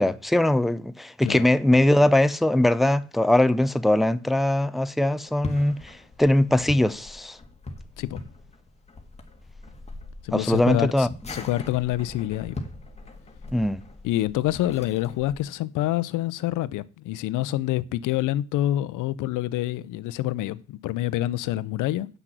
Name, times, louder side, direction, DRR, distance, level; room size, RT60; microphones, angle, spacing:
voice 1, 0.0-7.4 10.3-11.1 13.5-13.8, left 1 dB, ahead, 0.4 m, -21 dB
sound 1, 5.2-15.4, left 2 dB, 20° left, 1.7 m, -41 dB
voice 2, 10.2-12.6 14.0-22.1, left 14 dB, 85° left, 0.5 m, -27 dB
8.0 x 6.0 x 6.0 m
cardioid pair, 90°, 30 cm